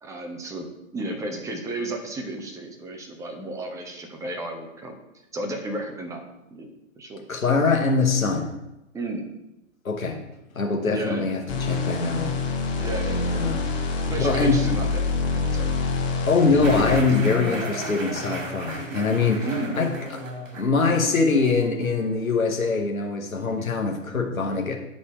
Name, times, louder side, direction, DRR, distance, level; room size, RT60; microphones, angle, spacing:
voice 1, 0.0-0.7 0.9-5.0 5.3-6.2 6.5-6.7 7.0-7.2 8.9-9.3 10.9-11.2 12.8-13.6 14.1-15.0 15.3-15.7 19.4-19.8, right 2 dB, 10° right, 3 dB, 0.8 m, -33 dB
voice 2, 7.3-8.5 9.8-10.2 10.5-12.3 13.1-13.7 14.1-14.6 16.3-19.5 19.7-19.9 20.6-24.7, left 4 dB, 90° left, 1 dB, 1.2 m, -23 dB
sound 1, 11.5-17.2, left 3 dB, 30° left, 1.6 m, -26 dB
sound 2, 16.6-22.2, right 1 dB, 65° right, 2.2 m, -35 dB
10.0 x 4.2 x 4.9 m, 0.91 s
figure-of-eight pair, 120°, 40 cm